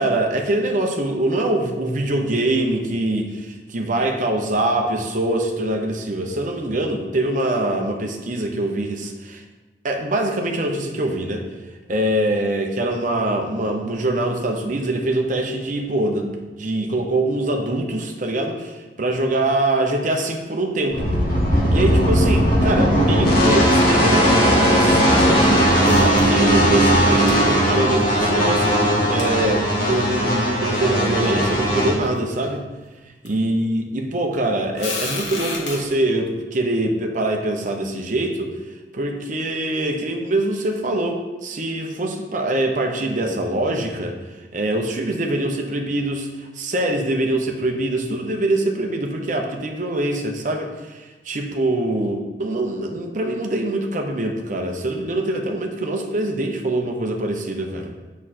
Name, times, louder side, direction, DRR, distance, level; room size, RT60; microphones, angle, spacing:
voice 1, 0.0-9.4 9.8-11.5 11.9-21.1 21.7-32.6 33.2-38.5 38.9-57.9, right 1 dB, 45° right, 3 dB, 0.9 m, -24 dB
sound 1, 20.9-31.9, equal, 50° left, 2.0 m, -18 dB
sound 2, 25.8-26.6 26.9-27.0 27.3-27.4 29.2-29.3 30.1-30.2 30.9-31.0 31.2-31.5 32.0-32.4 33.3-33.4 34.8-35.8, left 3 dB, 75° left, 1.8 m, -31 dB
7.2 x 6.1 x 4.3 m, 1.2 s
head